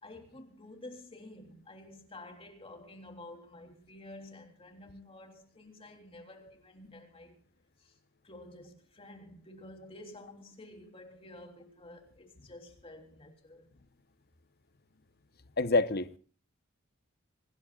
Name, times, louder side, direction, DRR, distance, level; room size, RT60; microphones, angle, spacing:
voice 1, 0.0-7.4 7.8-7.9 8.2-13.7, left 1 dB, 25° left, 3.4 m, -50 dB
voice 2, 15.6-16.2, left 3 dB, 50° left, 1.0 m, -27 dB
26.0 x 19.0 x 2.4 m
head